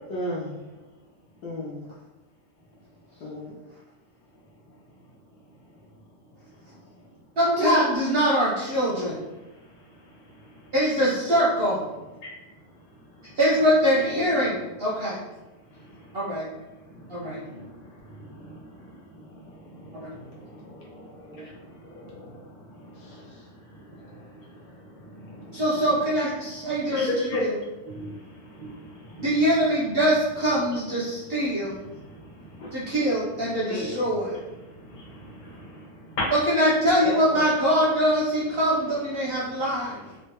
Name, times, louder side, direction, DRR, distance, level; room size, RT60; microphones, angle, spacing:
voice 1, 0.1-0.5 1.4-1.9 3.2-3.6 7.6-8.0 21.3-21.5 22.9-23.5 32.6-32.8, left 1 dB, 90° left, -4 dB, 1.3 m, -33 dB
voice 2, 7.4-9.2 10.7-11.8 13.4-15.2 16.1-16.5 17.1-17.4 19.9-20.1 25.5-27.1 27.4-27.5 29.2-31.8 32.7-34.4 36.3-40.0, equal, 60° right, -6 dB, 0.6 m, -23 dB
voice 3, 9.4-10.7 12.2-13.4 15.7-16.2 16.7-26.0 26.4-29.4 31.7-32.9 33.7-34.2 34.6-36.3 37.0-37.5 39.2-40.2, left 1 dB, 40° left, -4 dB, 0.7 m, -38 dB
3.7 x 2.1 x 2.8 m, 1.1 s
omnidirectional pair, 1.7 m